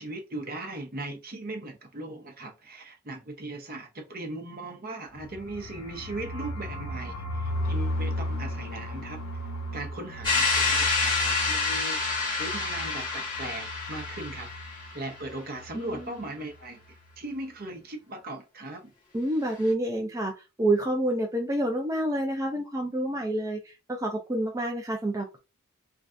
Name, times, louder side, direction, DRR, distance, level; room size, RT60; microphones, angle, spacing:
voice 1, 0.0-14.5 14.9-18.9, right 2 dB, 45° right, 0.9 m, -39 dB
sound 1, 5.2-14.9 15.2-15.3 15.5-16.0, equal, 90° left, 0.7 m, -35 dB
sound 2, 10.2-15.0, left 4 dB, 20° left, 1.4 m, -27 dB
voice 2, 19.1-20.3 20.6-25.4, right 1 dB, 15° right, 0.4 m, -28 dB
3.3 x 2.4 x 2.5 m
head